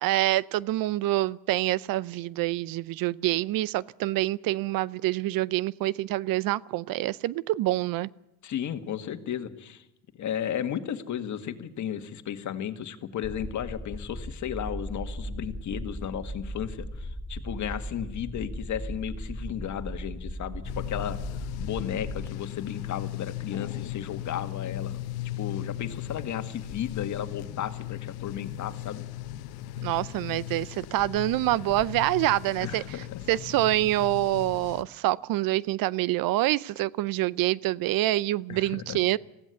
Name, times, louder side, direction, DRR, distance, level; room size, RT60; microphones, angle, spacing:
voice 1, 0.0-8.1 29.8-33.0 33.3-39.2, right 16 dB, 65° right, 0.6 m, -26 dB
voice 2, 8.4-9.8 10.2-25.0 25.4-29.1 32.6-33.2 38.5-39.0, left 9 dB, 50° left, 1.9 m, -34 dB
sound 1, 13.2-22.3, equal, 5° left, 1.0 m, -37 dB
sound 2, 20.6-34.8, left 13 dB, 80° left, 1.1 m, -37 dB
20.5 x 16.0 x 8.3 m
cardioid pair, 115°, 37 cm